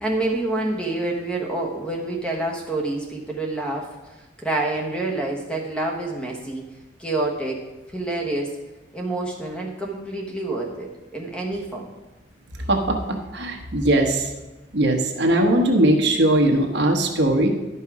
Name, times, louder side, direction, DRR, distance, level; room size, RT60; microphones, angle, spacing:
voice 1, 0.0-6.7 7.0-8.6 8.9-11.9, right 2 dB, 5° left, 0 dB, 1.1 m, -27 dB
voice 2, 12.7-14.3 14.7-17.5, right 1 dB, 60° right, 3 dB, 1.1 m, -20 dB
11.5 x 5.6 x 4.8 m, 1.1 s
head